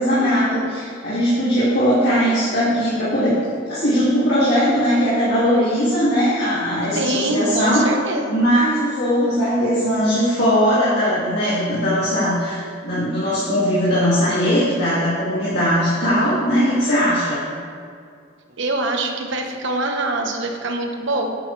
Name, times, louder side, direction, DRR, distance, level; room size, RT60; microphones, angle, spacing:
voice 1, 0.0-3.4 3.7-7.8 8.3-17.5, equal, 60° left, -10 dB, 2.4 m, -19 dB
voice 2, 6.9-8.4 18.6-21.4, right 2 dB, 65° right, 3 dB, 1.1 m, -24 dB
11.5 x 9.1 x 3.3 m, 2.3 s
head